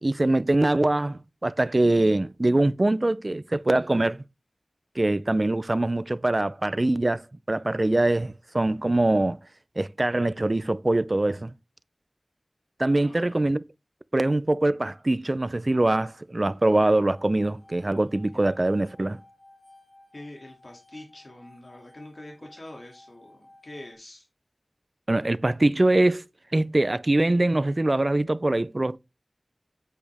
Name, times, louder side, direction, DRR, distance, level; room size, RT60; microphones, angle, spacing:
voice 1, 0.0-4.2 5.0-9.4 9.8-11.5 12.8-13.6 14.1-19.2 25.1-26.2 26.5-29.0, right 2 dB, 50° right, 0.6 m, -23 dB
voice 2, 13.0-13.5 18.3-18.4 20.1-24.3, left 1 dB, 75° left, 2.7 m, -45 dB
sound 1, 16.9-23.9, left 1 dB, 50° left, 2.5 m, -55 dB
8.6 x 8.5 x 3.5 m
wide cardioid pair, 45°, 0 cm